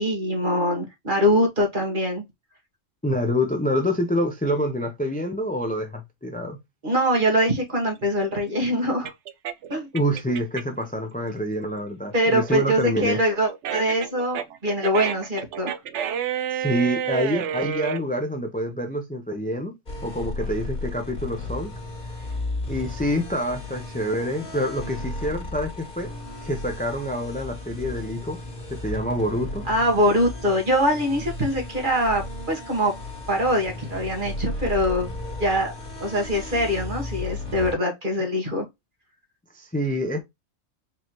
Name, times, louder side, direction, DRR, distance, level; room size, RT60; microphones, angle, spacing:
voice 1, 0.0-2.2 6.8-9.1 9.7-9.9 12.1-15.7 29.7-32.9 33.3-35.1 35.4-35.7 36.0-38.7, equal, 40° right, 1.8 m, -23 dB
voice 2, 3.0-6.6 9.9-13.2 16.5-19.7 20.0-21.7 22.7-26.1 26.4-28.4 28.7-29.6 39.5-40.2, equal, 10° left, 0.5 m, -27 dB
sound 1, 7.4-10.9 11.3-18.0, right 9 dB, 75° right, 0.9 m, -30 dB
sound 2, 19.9-37.7, left 2 dB, 40° left, 2.2 m, -34 dB
4.8 x 3.2 x 3.0 m
omnidirectional pair, 1.3 m